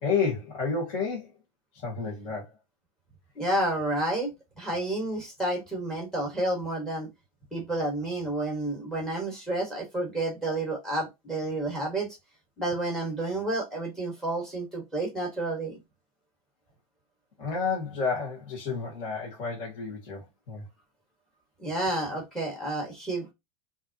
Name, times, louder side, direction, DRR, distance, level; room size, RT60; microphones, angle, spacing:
voice 1, 0.0-1.3 1.7-2.5 17.4-20.7, left 5 dB, 30° left, 1.7 m, -30 dB
voice 2, 3.4-4.3 4.6-7.1 7.5-12.1 12.6-15.8 21.6-23.3, right 1 dB, 5° left, 1.8 m, -30 dB
5.5 x 2.8 x 2.9 m
supercardioid pair, 175°, 17 cm